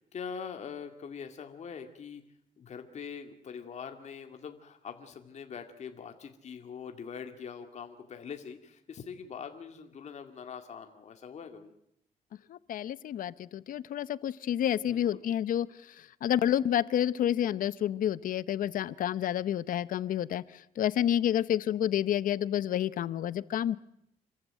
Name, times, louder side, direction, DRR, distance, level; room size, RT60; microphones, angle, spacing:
voice 1, 0.0-2.2 2.6-11.7 14.8-15.2, left 6 dB, 55° left, 5 dB, 2.2 m, -43 dB
voice 2, 12.5-23.8, left 10 dB, 75° left, 17 dB, 0.8 m, -29 dB
27.0 x 15.0 x 9.0 m, 0.78 s
cardioid pair, 115°, 14 cm